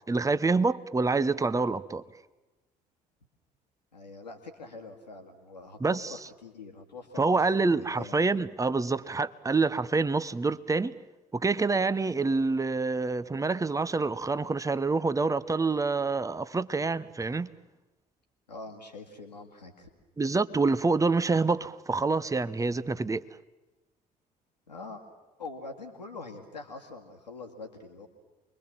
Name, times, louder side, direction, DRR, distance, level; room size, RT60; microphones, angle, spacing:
voice 1, 0.1-2.0 5.8-6.2 7.2-10.9 11.3-17.5 20.2-23.2, right 3 dB, 15° right, 1.0 m, -27 dB
voice 2, 3.9-7.5 8.0-8.2 18.5-19.9 24.7-25.0 25.4-28.1, left 3 dB, 85° left, 2.0 m, -44 dB
29.0 x 22.5 x 7.6 m
figure-of-eight pair, 55°, 21 cm